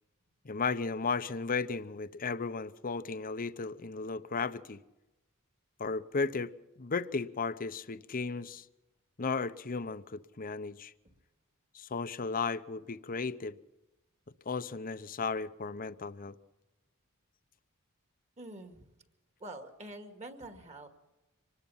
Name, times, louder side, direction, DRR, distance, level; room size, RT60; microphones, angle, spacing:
voice 1, 0.4-4.8 5.8-6.5 6.8-8.7 9.2-10.9 11.7-13.6 14.5-16.4, left 4 dB, 40° left, 0.8 m, -35 dB
voice 2, 18.4-18.9 19.4-20.9, right 1 dB, 30° right, 2.1 m, -46 dB
25.0 x 19.5 x 5.7 m
head